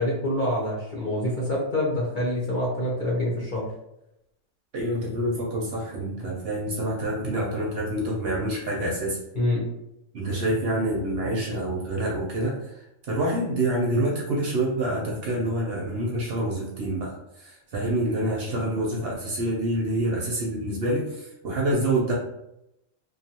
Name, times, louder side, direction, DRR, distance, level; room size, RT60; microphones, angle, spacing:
voice 1, 0.0-3.7 9.3-9.7, left 1 dB, 50° left, -5 dB, 0.7 m, -26 dB
voice 2, 4.7-9.2 10.1-12.6 13.1-22.1, right 1 dB, 60° right, -2 dB, 0.7 m, -27 dB
2.5 x 2.3 x 2.8 m, 0.85 s
omnidirectional pair, 1.4 m